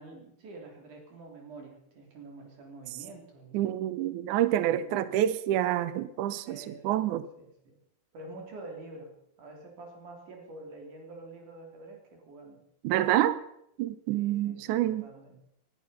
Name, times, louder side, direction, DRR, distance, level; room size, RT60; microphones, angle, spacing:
voice 1, 0.0-3.6 4.7-5.2 6.5-7.8 8.1-12.6 14.2-15.4, right 2 dB, 55° right, 4.5 m, -47 dB
voice 2, 3.5-7.3 12.8-13.4 13.8-15.1, right 12 dB, 90° right, 1.7 m, -27 dB
19.5 x 11.5 x 5.6 m
omnidirectional pair, 4.6 m